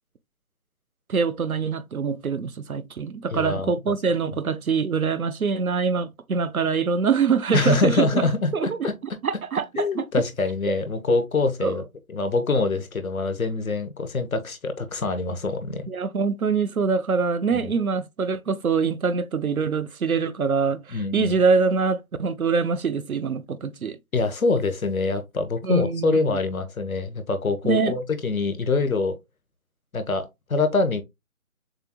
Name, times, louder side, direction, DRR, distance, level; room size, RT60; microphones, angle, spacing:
voice 1, 1.1-8.2 8.5-8.9 9.2-10.0 11.6-11.8 15.9-24.0 25.6-26.4 27.6-28.0, right 5 dB, 80° right, 0.8 m, -24 dB
voice 2, 3.3-3.7 7.5-8.9 9.8-11.8 12.1-15.9 17.5-17.7 20.9-21.4 24.1-29.2 29.9-31.0, left 3 dB, 75° left, 1.3 m, -25 dB
6.7 x 2.9 x 2.3 m
figure-of-eight pair, 155°, 42 cm